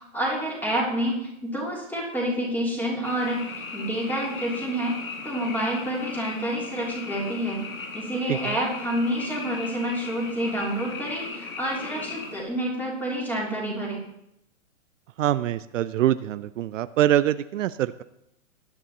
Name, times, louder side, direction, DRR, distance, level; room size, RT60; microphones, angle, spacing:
voice 1, 0.0-3.4 3.7-4.9 5.2-7.6 7.9-14.0, right 1 dB, 5° left, -4 dB, 3.0 m, -28 dB
Frog, 3.0-12.4, left 4 dB, 85° left, 2.6 m, -37 dB
voice 2, 15.2-18.0, right 12 dB, 70° right, 14 dB, 0.5 m, -24 dB
18.5 x 9.8 x 2.9 m, 0.81 s
hypercardioid pair, 135°, 40 cm